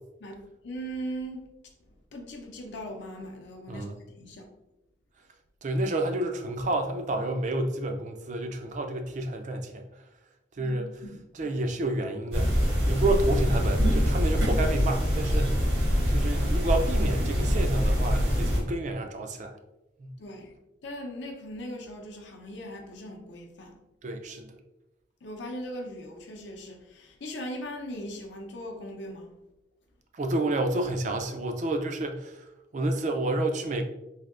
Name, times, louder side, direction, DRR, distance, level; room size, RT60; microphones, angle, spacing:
voice 1, 0.2-1.5 2.1-3.9 4.2-4.5 10.6-10.8 11.1-11.2 20.2-20.6 20.8-23.8 25.2-29.3, equal, 70° left, 2 dB, 0.6 m, -39 dB
voice 2, 3.7-4.0 5.6-9.8 10.5-10.9 11.3-15.7 16.1-19.6 20.0-20.1 24.0-24.5 30.1-32.5 32.7-33.8, right 2 dB, 40° right, 5 dB, 0.3 m, -30 dB
sound 1, 12.3-18.6, equal, 85° right, 1.4 m, -24 dB
3.3 x 2.7 x 2.4 m, 0.94 s
head